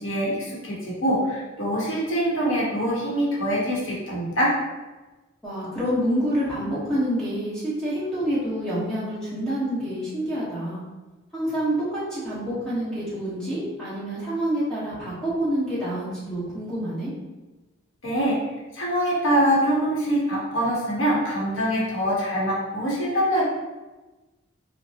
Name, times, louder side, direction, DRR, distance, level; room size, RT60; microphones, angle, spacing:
voice 1, 0.0-4.5 18.0-18.4 18.7-23.4, equal, 75° left, -5 dB, 1.0 m, -24 dB
voice 2, 5.4-10.8 11.3-17.1, equal, 5° left, -10 dB, 1.1 m, -27 dB
5.1 x 2.1 x 2.8 m, 1.2 s
head